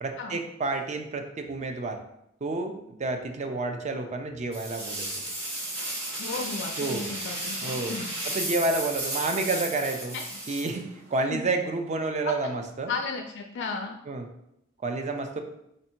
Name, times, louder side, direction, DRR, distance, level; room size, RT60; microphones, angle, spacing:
voice 1, 0.0-2.0 2.4-5.1 6.8-7.1 7.6-8.0 8.2-10.1 10.5-12.9 14.1-14.3 14.8-15.4, right 3 dB, 35° right, 5 dB, 0.5 m, -30 dB
sound 1, 4.5-11.2, right 1 dB, 60° right, 1.7 m, -34 dB
voice 2, 6.2-8.1 10.1-10.4 11.2-11.4 12.2-12.3 12.9-14.0, left 4 dB, 60° left, 5 dB, 0.4 m, -34 dB
4.3 x 2.6 x 4.3 m, 0.79 s
head